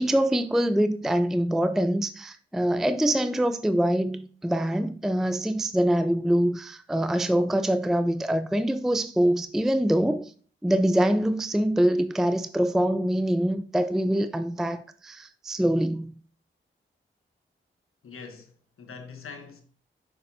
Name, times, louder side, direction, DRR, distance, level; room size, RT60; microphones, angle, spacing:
voice 1, 0.0-10.3 10.6-16.1, right 1 dB, ahead, 0.4 m, -24 dB
voice 2, 18.0-19.6, left 5 dB, 85° left, 1.2 m, -43 dB
6.5 x 5.9 x 2.7 m
cardioid pair, 50°, 21 cm